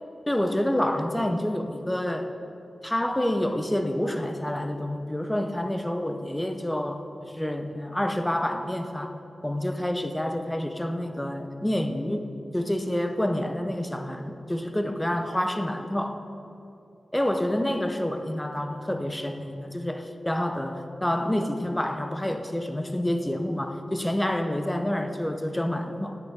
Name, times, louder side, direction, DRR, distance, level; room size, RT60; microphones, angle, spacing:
voice 1, 0.3-2.3 2.8-16.2 17.1-26.2, left 1 dB, 10° left, 7 dB, 0.7 m, -28 dB
9.5 x 9.1 x 7.3 m, 2.7 s
wide cardioid pair, 135°, 0 cm